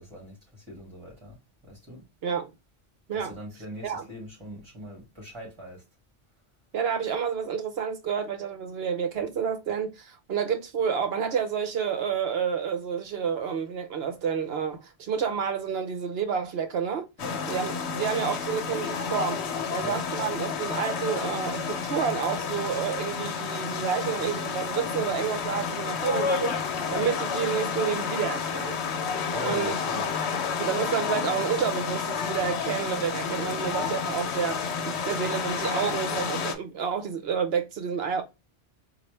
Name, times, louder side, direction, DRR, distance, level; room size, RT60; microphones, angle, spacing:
voice 1, 0.0-2.1 3.1-5.8 17.2-17.4 19.8-20.0 29.3-30.1, left 1 dB, 25° right, 2.3 m, -41 dB
voice 2, 6.7-17.0 17.5-19.4 19.7-28.8 29.4-29.8 30.6-38.2, right 7 dB, 70° right, 1.0 m, -29 dB
sound 1, 17.2-36.5, left 6 dB, 80° left, 1.0 m, -30 dB
4.0 x 2.5 x 3.2 m
omnidirectional pair, 1.1 m